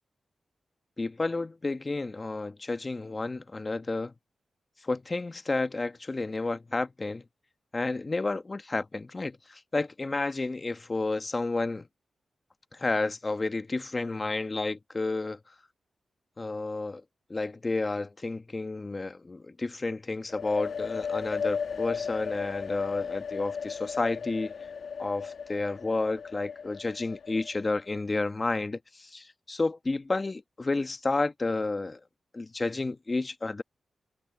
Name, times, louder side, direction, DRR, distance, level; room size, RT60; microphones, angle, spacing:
voice 1, 1.0-4.1 4.8-7.2 7.7-11.9 12.7-15.4 16.4-17.0 17.3-24.5 25.0-32.0 32.3-33.6, left 3 dB, 40° left, 1.2 m, -31 dB
sound 1, 20.3-27.9, left 6 dB, 80° left, 1.7 m, -35 dB
cardioid pair, 45°, 0 cm